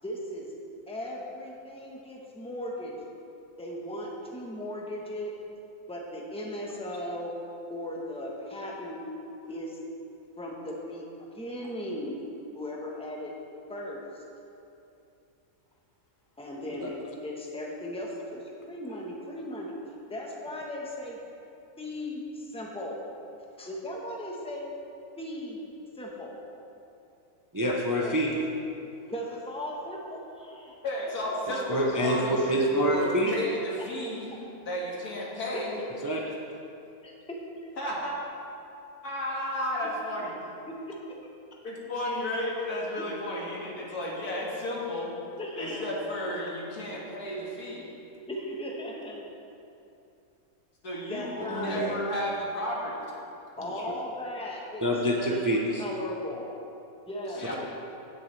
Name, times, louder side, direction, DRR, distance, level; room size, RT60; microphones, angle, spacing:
voice 1, 0.0-0.5 0.9-2.9 3.6-5.3 5.9-7.3 7.7-9.1 9.5-9.8 10.4-11.1 11.3-12.2 12.5-13.3 13.7-14.2 16.4-17.0 17.2-19.7 20.1-21.2 21.8-23.0 23.6-24.7 25.2-25.6 25.9-26.4 28.0-28.2 29.1-30.8 34.3-34.4 35.5-35.8 37.0-37.7 40.2-40.3 40.7-41.0 43.0-43.1 45.4-45.9 48.3-49.2 51.1-51.8 53.6-54.8 55.1-55.5 55.8-56.5 57.0-57.5, left 1 dB, 5° left, -2 dB, 1.0 m, -37 dB
voice 2, 27.5-28.3 31.7-33.3 36.0-36.2 51.5-52.0 54.8-55.8, equal, 20° right, -2 dB, 0.6 m, -26 dB
voice 3, 30.8-34.4 34.6-35.8 37.8-38.2 39.0-40.3 41.6-45.1 45.6-47.9 50.8-53.1 57.4-57.6, left 1 dB, 90° left, -4 dB, 2.3 m, -33 dB
16.5 x 7.1 x 3.4 m, 2.7 s
omnidirectional pair, 1.6 m